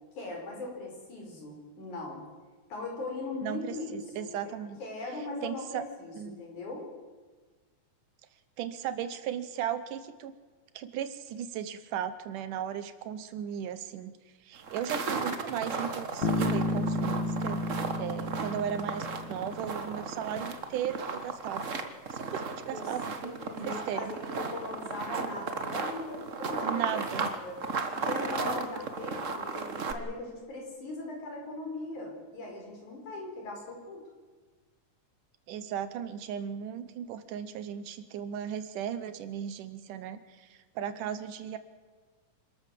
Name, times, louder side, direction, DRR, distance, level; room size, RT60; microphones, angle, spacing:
voice 1, 0.2-2.2 2.7-6.9 22.7-22.9 23.2-27.6 28.0-34.0, left 2 dB, 70° left, 1 dB, 6.1 m, -40 dB
voice 2, 3.4-4.8 5.4-5.8 6.2-6.4 8.6-10.3 10.7-14.1 14.4-17.6 18.0-21.7 22.1-24.2 26.6-27.3 35.5-41.6, right 9 dB, 85° right, 12 dB, 2.6 m, -36 dB
sound 1, 14.6-29.9, right 4 dB, 55° right, 0.8 m, -35 dB
Bass guitar, 16.2-20.0, left 2 dB, 50° left, 1.6 m, -32 dB
27.0 x 13.5 x 7.6 m, 1.4 s
omnidirectional pair, 3.6 m